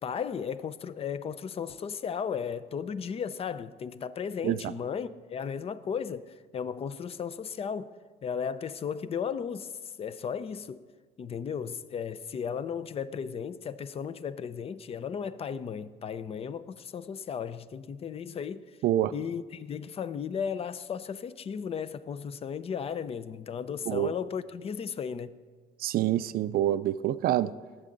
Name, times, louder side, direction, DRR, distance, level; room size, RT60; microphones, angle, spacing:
voice 1, 0.0-7.9 8.2-10.8 11.2-18.6 19.1-25.3, left 7 dB, 35° left, 0.5 m, -35 dB
voice 2, 25.8-27.5, right 13 dB, 60° right, 0.4 m, -26 dB
19.0 x 7.5 x 3.9 m
cardioid pair, 110°, 17 cm